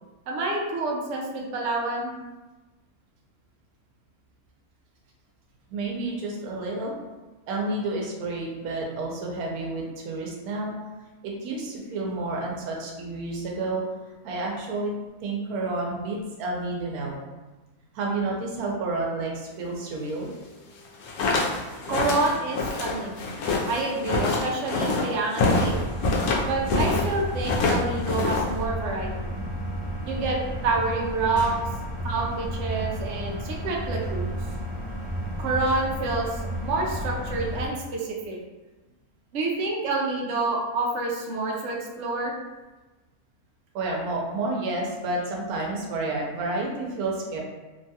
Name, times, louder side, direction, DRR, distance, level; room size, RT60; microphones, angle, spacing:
voice 1, 0.3-2.1 21.9-23.3 23.7-25.7 26.4-29.4 30.1-31.5 32.0-34.4 35.4-38.4 39.3-42.3, right 3 dB, 65° right, -2 dB, 0.8 m, -28 dB
voice 2, 5.7-6.9 7.5-10.7 11.2-13.8 14.2-14.9 15.2-17.2 17.9-20.3 43.7-47.4, right 2 dB, 90° right, -1 dB, 1.1 m, -30 dB
sound 1, 20.8-27.1 27.4-28.6, left 3 dB, 85° left, 1.1 m, -25 dB
sound 2, 25.4-37.7, equal, 60° left, 0.4 m, -32 dB
3.0 x 2.2 x 2.7 m, 1.2 s
omnidirectional pair, 1.5 m